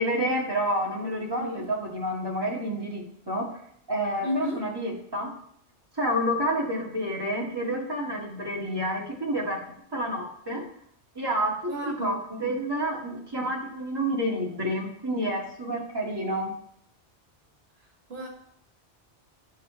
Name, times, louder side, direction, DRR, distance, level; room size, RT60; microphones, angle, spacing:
voice 1, 0.0-3.6 3.9-5.3 6.0-9.6 9.9-10.6 11.1-16.5, equal, 20° right, -4 dB, 2.0 m, -29 dB
voice 2, 4.2-4.6 11.7-12.4 18.1-18.3, left 1 dB, 65° right, -1 dB, 1.7 m, -32 dB
14.0 x 5.6 x 3.3 m, 0.71 s
omnidirectional pair, 1.1 m